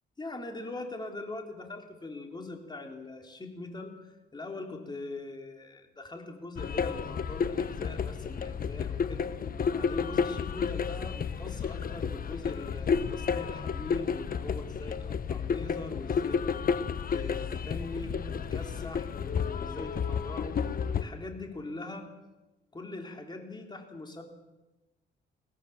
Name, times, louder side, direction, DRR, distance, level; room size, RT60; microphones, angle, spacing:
voice 1, 0.2-9.3 9.7-20.6 20.9-22.1 22.7-24.2, left 2 dB, 20° left, 3 dB, 4.1 m, -42 dB
sound 1, 6.6-21.0, left 6 dB, 45° left, 1.1 m, -31 dB
22.5 x 17.0 x 7.4 m, 1.1 s
cardioid pair, 90°, 20 cm